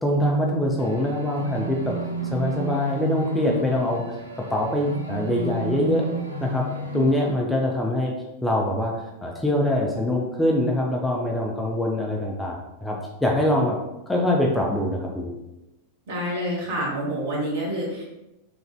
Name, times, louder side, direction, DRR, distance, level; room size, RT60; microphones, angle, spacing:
voice 1, 0.0-2.0 2.3-6.0 6.4-6.7 6.9-8.1 8.4-13.0 13.2-13.8 14.1-15.3, left 1 dB, 5° left, -2 dB, 0.4 m, -24 dB
sound 1, 0.8-7.3, right 2 dB, 85° right, 0.4 m, -32 dB
voice 2, 16.1-18.0, equal, 55° right, -5 dB, 1.2 m, -27 dB
3.1 x 2.4 x 2.2 m, 0.94 s
figure-of-eight pair, 90°, 0 cm